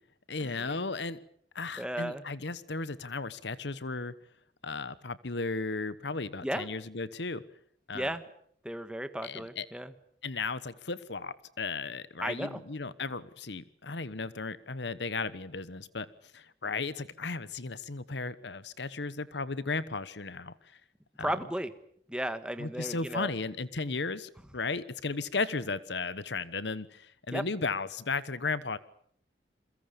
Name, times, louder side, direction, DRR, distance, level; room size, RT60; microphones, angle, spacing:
voice 1, 0.3-1.2 1.5-4.1 4.6-7.4 7.9-8.2 9.2-9.7 10.2-16.1 16.3-20.5 21.2-21.4 22.6-28.8, left 4 dB, 75° left, 16 dB, 1.1 m, -35 dB
voice 2, 1.8-2.2 6.4-6.7 7.9-8.2 8.6-9.9 12.2-12.6 21.2-21.7 22.1-23.3 27.3-27.4, right 1 dB, 5° right, 10 dB, 1.5 m, -34 dB
29.0 x 22.5 x 6.9 m, 0.65 s
head